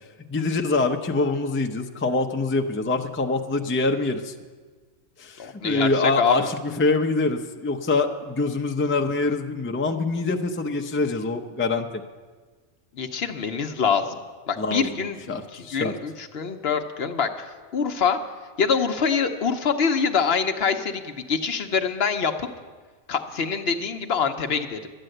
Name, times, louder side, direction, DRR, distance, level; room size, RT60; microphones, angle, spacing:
voice 1, 0.3-4.3 5.2-12.0 14.6-14.9 15.3-15.9, left 3 dB, 15° left, 5 dB, 0.4 m, -25 dB
voice 2, 5.4-6.5 12.9-14.2 14.5-18.2 18.6-22.5 23.1-24.9, left 6 dB, 60° left, 6 dB, 1.0 m, -25 dB
12.0 x 9.0 x 7.8 m, 1.4 s
omnidirectional pair, 1.2 m